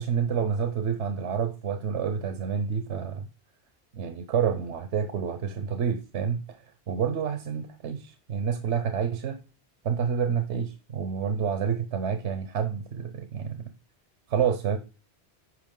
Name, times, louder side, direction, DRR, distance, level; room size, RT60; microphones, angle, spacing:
voice 1, 0.0-3.3 3.9-9.4 9.8-13.7 14.3-14.8, right 7 dB, 90° right, 1.1 m, -28 dB
9.8 x 5.8 x 3.7 m
omnidirectional pair, 1.1 m